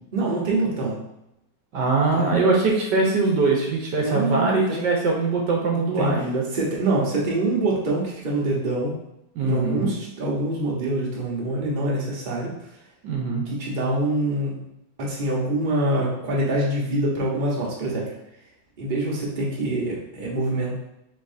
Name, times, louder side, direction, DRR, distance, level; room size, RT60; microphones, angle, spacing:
voice 1, 0.1-0.9 2.1-2.3 4.0-4.9 5.7-8.9 9.4-12.5 13.5-14.6 15.0-18.0 18.8-20.7, right 1 dB, 35° right, -4 dB, 0.9 m, -25 dB
voice 2, 1.7-6.4 9.4-9.9 13.0-13.5, right 3 dB, 70° right, -1 dB, 1.3 m, -22 dB
5.4 x 3.6 x 2.6 m, 0.84 s
omnidirectional pair, 2.1 m